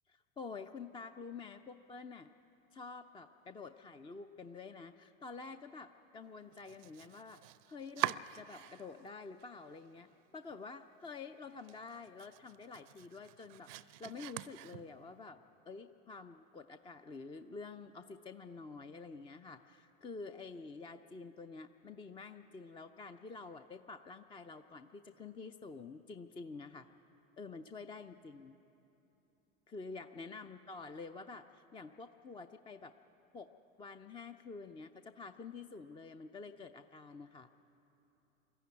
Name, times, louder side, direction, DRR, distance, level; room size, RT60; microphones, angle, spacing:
voice 1, 0.1-2.3 2.7-15.4 15.7-26.9 27.4-28.6 29.7-32.9 33.3-33.5 33.8-37.5, left 4 dB, 15° left, 9 dB, 0.4 m, -49 dB
Domestic sounds home sounds, 6.5-9.1 9.4-10.1 10.5-10.6 11.0-11.1 11.5-15.2, right 17 dB, 65° right, 0.6 m, -44 dB
21.5 x 14.0 x 9.5 m, 3.0 s
hypercardioid pair, 90°, 40 cm